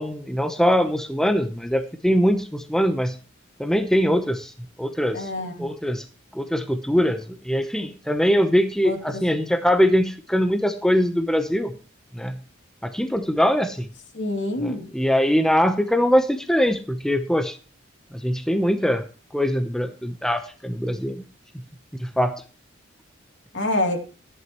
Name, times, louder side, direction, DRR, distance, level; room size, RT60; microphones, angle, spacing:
voice 1, 0.0-3.2 3.6-4.5 4.8-5.3 5.6-6.0 6.3-7.2 7.4-11.7 12.1-12.4 12.8-13.9 14.6-17.6 18.2-19.0 19.3-21.2 22.0-22.4, equal, 5° left, 7 dB, 0.8 m, -22 dB
voice 2, 5.1-5.7 8.8-9.2 14.1-14.9 23.5-24.0, left 1 dB, 65° left, 3 dB, 2.7 m, -26 dB
14.5 x 11.0 x 3.1 m, 0.37 s
head